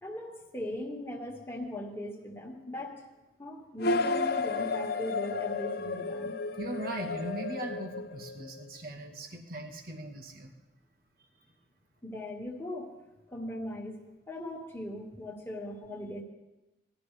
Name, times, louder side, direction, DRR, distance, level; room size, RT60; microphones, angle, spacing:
voice 1, 0.0-3.0 3.4-6.4 12.0-12.9 13.3-16.2, left 1 dB, 15° left, -1 dB, 1.9 m, -39 dB
sound 1, 3.8-8.6, left 3 dB, 55° left, 0.6 m, -32 dB
voice 2, 6.6-10.5, right 2 dB, 50° right, 3 dB, 1.4 m, -39 dB
20.5 x 12.5 x 3.4 m, 1.0 s
head